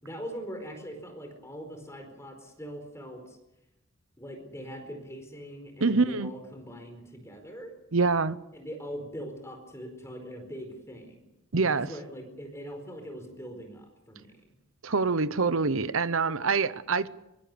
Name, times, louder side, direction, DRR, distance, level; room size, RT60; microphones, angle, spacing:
voice 1, 0.0-3.4 4.2-7.7 8.5-11.3 11.6-14.6, equal, 15° left, 4.7 m, -42 dB
voice 2, 5.8-6.3 7.9-8.4 11.5-11.9 14.8-17.1, right 4 dB, 75° right, 0.9 m, -25 dB
23.5 x 21.5 x 6.9 m
head